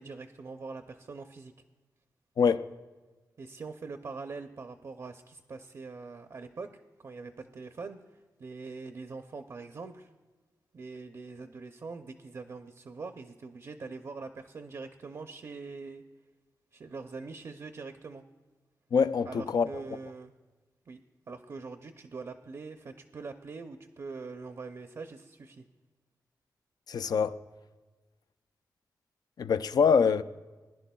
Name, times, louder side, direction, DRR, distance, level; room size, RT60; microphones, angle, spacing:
voice 1, 0.0-1.5 3.4-10.1 10.7-16.0 16.7-18.2 19.3-20.3 20.9-21.0 21.3-25.6, right 4 dB, 50° right, 0.5 m, -43 dB
voice 2, 2.4-2.7 18.9-19.7 26.9-27.4 29.4-30.2, left 6 dB, 70° left, 0.4 m, -24 dB
20.0 x 11.0 x 2.3 m
wide cardioid pair, 115°, 7 cm